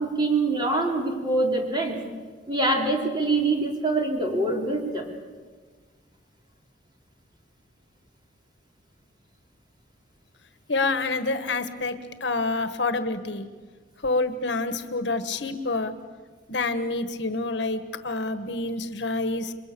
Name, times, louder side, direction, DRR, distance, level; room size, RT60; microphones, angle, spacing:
voice 1, 0.0-2.0 2.5-5.1, right 2 dB, 25° right, 0 dB, 3.8 m, -24 dB
voice 2, 10.7-13.5 14.0-15.9 16.5-19.5, left 3 dB, 70° left, 10 dB, 1.4 m, -27 dB
29.0 x 22.5 x 6.9 m, 1.5 s
head